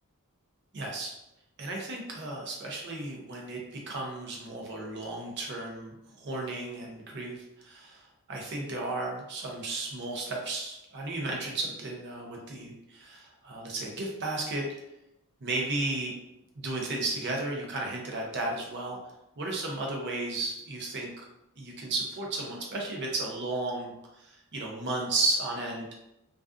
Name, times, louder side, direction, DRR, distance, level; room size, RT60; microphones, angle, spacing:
voice 1, 0.7-1.1 1.6-14.8 15.4-16.1 16.6-19.0 19.4-21.2 21.6-25.9, right 2 dB, 50° right, -1 dB, 0.6 m, -34 dB
2.4 x 2.3 x 2.3 m, 0.88 s
head